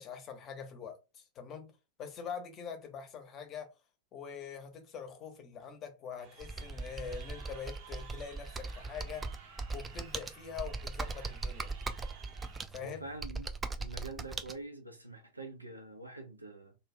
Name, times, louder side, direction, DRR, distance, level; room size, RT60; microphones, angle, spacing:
voice 1, 0.0-1.7 2.0-3.7 4.1-9.3 9.7-11.7 12.7-13.0, left 7 dB, 30° left, 0.7 m, -44 dB
Crowd, 6.2-12.6, right 6 dB, 45° right, 0.7 m, -54 dB
Computer keyboard, 6.4-14.5, right 3 dB, 15° right, 0.3 m, -40 dB
voice 2, 12.8-13.5 13.8-16.8, right 2 dB, 85° right, 0.6 m, -45 dB
2.4 x 2.2 x 3.2 m
figure-of-eight pair, 90°, 0 cm